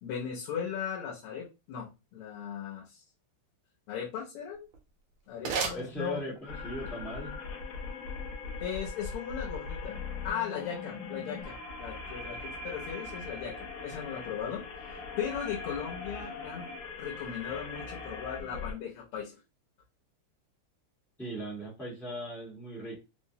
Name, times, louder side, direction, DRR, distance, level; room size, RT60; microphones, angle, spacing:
voice 1, 0.0-3.0 3.9-4.7 5.3-6.2 8.6-10.0 10.2-16.7 17.0-19.4, left 8 dB, 85° left, -2 dB, 1.7 m, -37 dB
sound 1, 4.5-6.6, right 5 dB, 75° right, 1.6 m, -37 dB
voice 2, 5.7-7.3 21.2-23.0, equal, ahead, -5 dB, 0.6 m, -39 dB
sound 2, 6.5-18.7, left 4 dB, 65° left, 1.0 m, -40 dB
4.1 x 2.0 x 2.7 m, 0.28 s
omnidirectional pair, 2.4 m